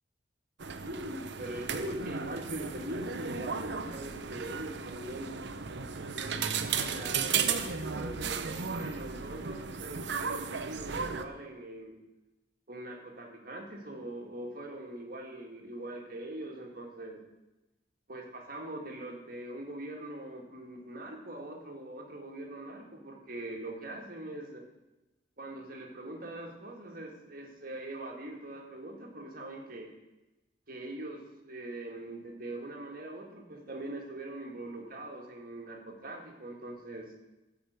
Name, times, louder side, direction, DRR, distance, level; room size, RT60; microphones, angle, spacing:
sound 1, 0.6-11.3, right 6 dB, 60° right, 0.7 m, -35 dB
voice 1, 0.8-5.4 6.1-12.0 12.7-17.2 18.1-24.6 25.4-29.9 30.7-37.1, right 1 dB, 45° right, 1 dB, 1.9 m, -42 dB
14.5 x 5.0 x 8.0 m, 1.0 s
head